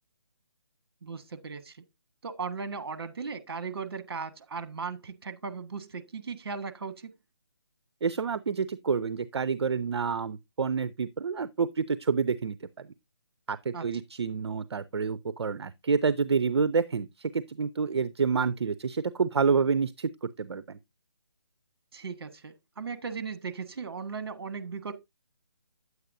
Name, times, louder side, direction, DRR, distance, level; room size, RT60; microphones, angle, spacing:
voice 1, 1.0-1.8 2.2-7.1 13.7-13.8 21.9-24.9, right 5 dB, 60° right, 1.4 m, -37 dB
voice 2, 8.0-12.9 13.5-20.8, right 5 dB, 75° right, 0.6 m, -28 dB
9.4 x 8.1 x 2.6 m
figure-of-eight pair, 155°, 14 cm